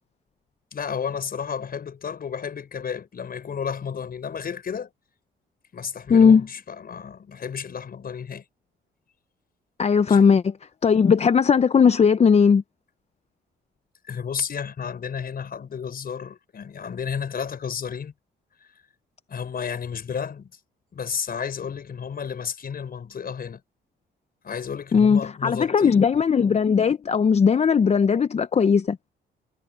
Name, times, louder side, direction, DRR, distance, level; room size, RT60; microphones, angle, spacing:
voice 1, 0.7-4.9 5.7-8.4 10.1-10.2 14.0-18.1 19.3-20.5 20.9-23.6 24.4-26.1, left 7 dB, 50° left, 5.7 m, -32 dB
voice 2, 6.1-6.5 9.8-10.5 10.8-12.6 24.9-29.0, left 6 dB, 35° left, 0.6 m, -18 dB
cardioid pair, 90°, 20 cm